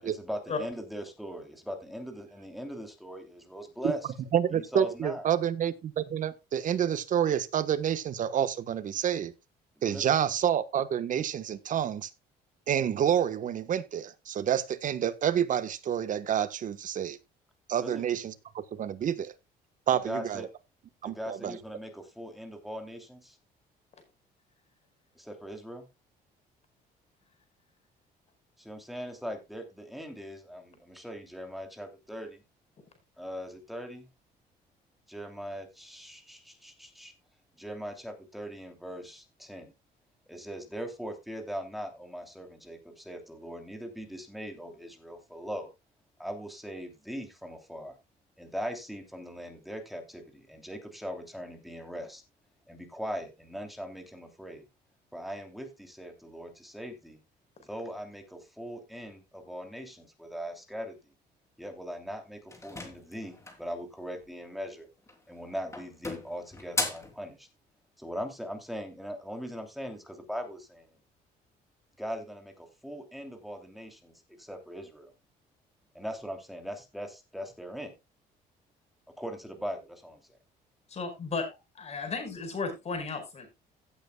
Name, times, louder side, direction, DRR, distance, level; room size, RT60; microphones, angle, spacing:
voice 1, 0.0-4.1 4.5-5.3 9.9-10.0 17.8-18.0 19.9-20.5 21.0-23.4 25.1-25.8 28.6-32.4 33.2-34.1 35.1-37.1 37.6-39.7 40.3-45.7 46.2-48.0 48.4-52.2 52.7-54.6 55.1-57.2 57.6-61.0 61.6-64.9 65.3-67.5 68.0-71.0 72.0-75.1 75.9-77.9 79.2-80.2, equal, ahead, 2.9 m, -40 dB
voice 2, 4.3-9.3 9.8-12.1 12.7-17.2 17.7-19.3 19.9-20.5 21.0-21.6, right 9 dB, 50° right, 1.2 m, -28 dB
sound 1, 62.5-63.7 65.0-65.4 65.7-67.2, left 2 dB, 15° left, 3.0 m, -36 dB
voice 3, 80.9-81.5 81.8-83.5, left 4 dB, 40° left, 4.8 m, -34 dB
16.5 x 8.2 x 2.3 m
cardioid pair, 110°, 17 cm